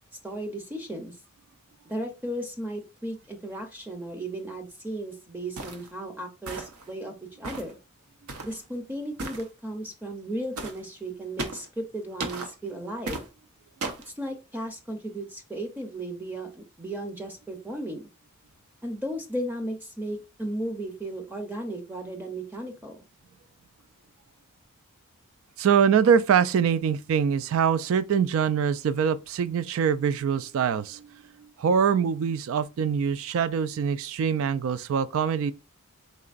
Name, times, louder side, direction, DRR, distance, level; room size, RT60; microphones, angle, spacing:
voice 1, 0.2-1.2 1.9-7.8 8.4-13.2 14.2-18.1 18.8-23.0, right 1 dB, 10° right, 0.5 m, -35 dB
sound 1, 5.6-5.9 6.5-6.9 7.4-7.7 8.3-8.6 9.2-9.5 10.6-10.8 11.4-11.7 12.2-12.5 13.1-13.3 13.8-14.1, right 2 dB, 85° right, 0.8 m, -35 dB
voice 2, 25.6-35.5, right 7 dB, 70° right, 0.3 m, -24 dB
4.3 x 3.7 x 2.4 m
head